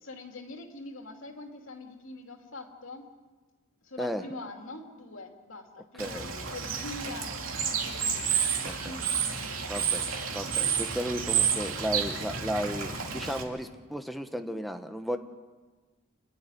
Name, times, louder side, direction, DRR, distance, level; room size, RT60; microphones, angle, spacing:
voice 1, 0.0-3.1 3.8-8.4 8.9-9.5 10.6-11.0, left 2 dB, 75° left, 3 dB, 2.9 m, -44 dB
voice 2, 6.0-6.3 8.2-8.3 8.6-9.0 9.7-10.0 10.3-15.2, equal, ahead, 6 dB, 1.1 m, -34 dB
Bird / Water, 6.0-13.4, right 7 dB, 85° right, 2.8 m, -30 dB
28.0 x 12.0 x 10.0 m, 1.3 s
head